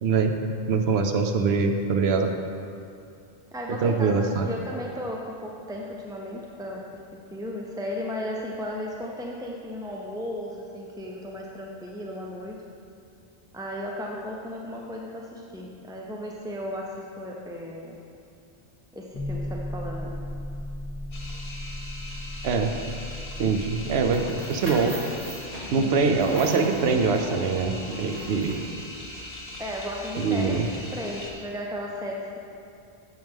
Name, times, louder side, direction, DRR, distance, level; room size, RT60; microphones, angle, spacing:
voice 1, 0.0-0.3 0.7-2.3 3.8-4.5 22.4-22.7 23.4-24.9 25.7-28.6 30.2-30.7, right 4 dB, 75° right, 5 dB, 0.9 m, -23 dB
voice 2, 3.5-6.8 7.3-12.6 13.5-18.0 18.9-20.2 25.8-26.1 29.6-32.4, left 1 dB, 5° right, -1 dB, 0.3 m, -35 dB
sound 1, 19.1-24.3, left 1 dB, 35° left, 0.7 m, -35 dB
sound 2, 21.1-31.3, left 1 dB, 75° left, 1.4 m, -40 dB
sound 3, 24.1-28.8, equal, 35° right, 1.3 m, -39 dB
9.1 x 6.8 x 3.5 m, 2.5 s
omnidirectional pair, 1.1 m